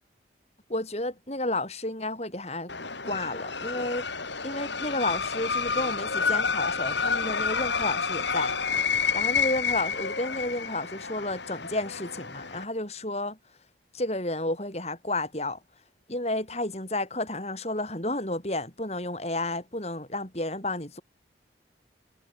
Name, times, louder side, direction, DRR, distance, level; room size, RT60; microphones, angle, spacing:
voice 1, 0.7-2.7 3.0-4.0 4.4-8.6 9.1-13.4 13.9-15.6 16.1-21.0, left 2 dB, 35° left, 6.3 m, -31 dB
sound 1, 2.7-12.6, left 5 dB, 70° left, 7.8 m, -29 dB
head